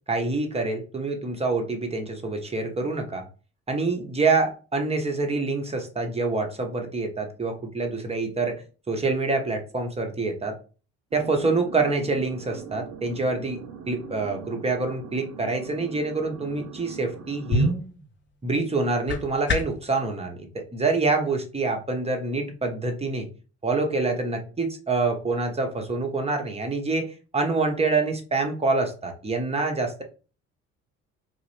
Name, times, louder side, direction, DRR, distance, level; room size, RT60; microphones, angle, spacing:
voice 1, 0.1-3.2 3.7-10.6 11.1-13.6 13.9-17.7 18.4-23.3 23.6-30.0, right 3 dB, 15° right, 4 dB, 0.9 m, -26 dB
sound 1, 11.1-17.7, right 7 dB, 45° right, 0.8 m, -42 dB
sound 2, 17.1-19.9, left 1 dB, 30° left, 0.8 m, -28 dB
3.7 x 2.4 x 3.4 m, 0.36 s
figure-of-eight pair, 50°, 38 cm